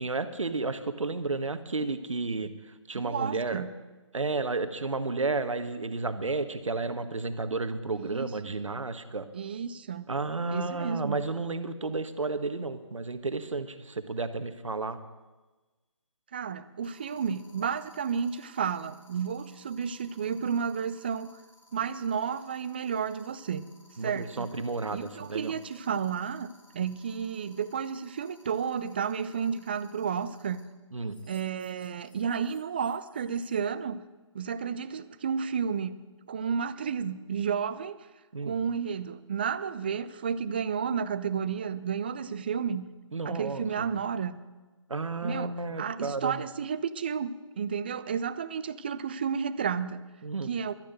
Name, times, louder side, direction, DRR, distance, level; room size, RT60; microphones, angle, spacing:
voice 1, 0.0-2.5 2.9-3.6 4.1-9.3 10.1-15.0 24.0-25.6 30.9-31.2 38.3-38.6 43.1-43.9 44.9-46.4 50.2-50.5, right 3 dB, 75° right, 10 dB, 1.2 m, -32 dB
voice 2, 2.9-3.7 7.9-8.5 9.3-10.1 10.5-11.2 16.3-21.3 21.7-23.6 24.0-24.5 24.9-30.6 31.3-34.0 34.3-36.0 36.3-38.0 38.4-42.9 43.2-44.4 45.2-50.0 50.5-50.7, right 7 dB, 20° right, 14 dB, 0.3 m, -32 dB
sound 1, 14.0-14.2 16.8-30.6 31.0-33.6, left 1 dB, 85° left, 5.1 m, -60 dB
12.0 x 10.0 x 8.0 m, 1.2 s
figure-of-eight pair, 150°, 16 cm